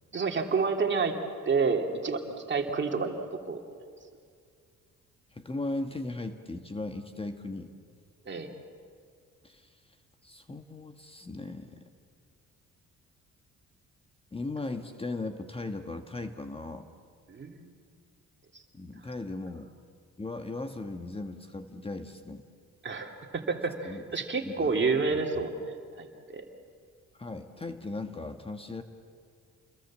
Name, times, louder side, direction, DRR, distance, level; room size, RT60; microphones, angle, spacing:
voice 1, 0.1-1.1 1.4-3.2 3.4-3.6 8.3-8.5 17.3-17.7 18.5-18.6 22.8-26.4, right 4 dB, 40° right, 3 dB, 2.8 m, -29 dB
voice 2, 5.3-7.7 9.4-9.7 10.2-11.7 14.3-16.9 18.7-19.7 20.2-22.4 23.8-24.0 24.4-24.8 25.1-25.2 27.1-28.8, left 2 dB, 20° left, 7 dB, 1.4 m, -37 dB
29.0 x 22.0 x 7.5 m, 2.2 s
cardioid pair, 90°, 30 cm